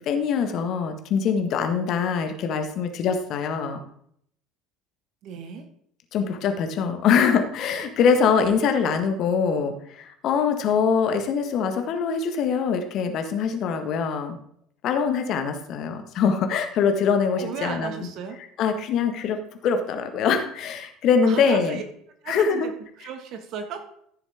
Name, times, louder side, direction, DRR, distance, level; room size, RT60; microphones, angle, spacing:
voice 1, 0.0-3.8 6.1-14.4 14.8-17.9 18.6-19.4 19.6-21.8 22.3-22.7, left 6 dB, 50° left, 6 dB, 1.5 m, -23 dB
voice 2, 5.2-5.7 17.4-18.4 21.2-21.8 22.2-23.8, right 6 dB, 55° right, 6 dB, 1.7 m, -35 dB
15.0 x 6.9 x 3.6 m, 0.68 s
figure-of-eight pair, 65°, 0 cm